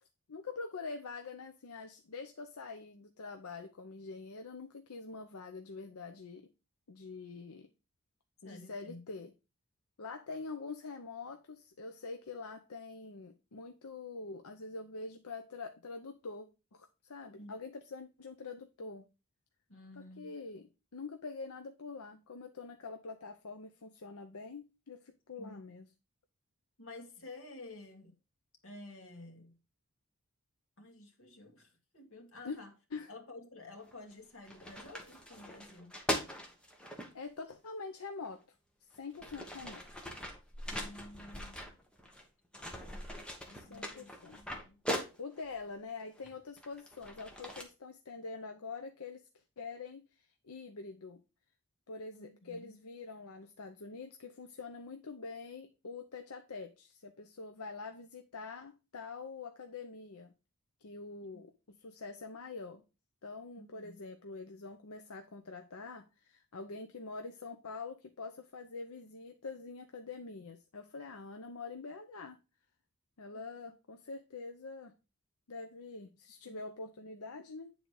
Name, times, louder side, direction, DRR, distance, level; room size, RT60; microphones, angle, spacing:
voice 1, 0.3-6.5 6.9-7.7 8.4-9.3 10.0-19.0 20.0-25.9 32.4-32.6 32.9-33.1 37.1-38.4 38.8-39.8 43.5-44.4 45.2-49.2 49.6-51.2 51.9-60.3 60.8-61.5 61.8-62.8 63.2-72.4 73.2-74.9 75.5-77.7, left 4 dB, 80° left, 0.7 m, -45 dB
voice 2, 8.4-9.0 17.3-17.5 19.7-20.4 25.4-25.6 26.8-28.1 28.6-29.6 30.8-32.7 33.1-36.0 40.7-41.7 43.5-44.1 44.4-44.8 52.1-52.7 61.2-61.3 63.6-64.0 73.3-73.4 76.4-76.6, left 2 dB, 60° left, 2.0 m, -51 dB
sound 1, 33.9-34.1 34.5-37.1 38.2-38.3 38.9-42.2 42.5-45.5 46.2-47.6, equal, 5° left, 1.2 m, -41 dB
9.4 x 3.9 x 4.7 m
head